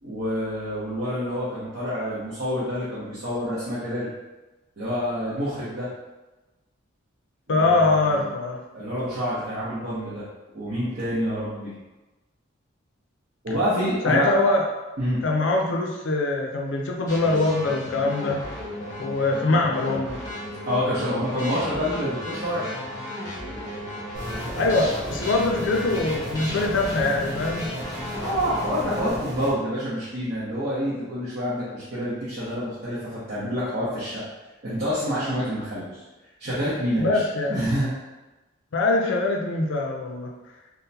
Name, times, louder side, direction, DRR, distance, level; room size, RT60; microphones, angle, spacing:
voice 1, 0.0-4.1 4.8-5.9 7.5-8.3 8.7-10.2 10.5-11.7 13.4-14.5 15.0-15.2 20.7-22.6 28.1-34.2 34.6-36.0 36.4-37.2 37.5-37.9, equal, 50° right, -12 dB, 0.8 m, -27 dB
voice 2, 7.5-8.6 14.0-14.6 15.2-18.5 19.0-20.2 24.6-27.7 37.0-37.6 38.7-40.3, left 2 dB, 65° left, 1 dB, 0.5 m, -23 dB
sound 1, 17.1-29.1, equal, 15° left, 0.7 m, -34 dB
sound 2, 24.1-29.5, equal, 20° right, 0.7 m, -35 dB
3.7 x 2.1 x 2.7 m, 1.1 s
head